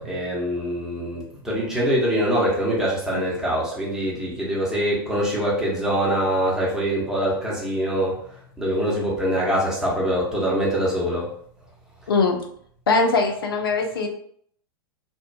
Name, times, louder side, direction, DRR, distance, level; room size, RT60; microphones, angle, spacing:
voice 1, 0.0-8.2 8.6-11.3, equal, 5° right, -6 dB, 0.9 m, -24 dB
voice 2, 12.1-12.4 12.9-14.1, left 3 dB, 70° left, 3 dB, 0.5 m, -21 dB
2.5 x 2.2 x 2.2 m, 0.63 s
figure-of-eight pair, 95°, 13 cm